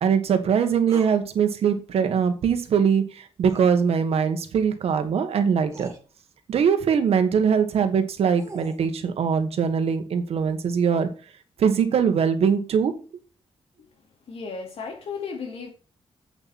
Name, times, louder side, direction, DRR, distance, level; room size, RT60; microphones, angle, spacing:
voice 1, 0.0-5.9 6.5-11.1 11.6-12.9, right 7 dB, 75° right, 1.6 m, -22 dB
sound 1, 0.9-1.2 3.5-3.7 5.1-5.2 5.7-6.0 8.0-8.8, right 3 dB, 30° right, 1.7 m, -41 dB
voice 2, 14.3-15.7, left 5 dB, 70° left, 2.6 m, -34 dB
8.0 x 7.2 x 4.3 m
wide cardioid pair, 160°, 10 cm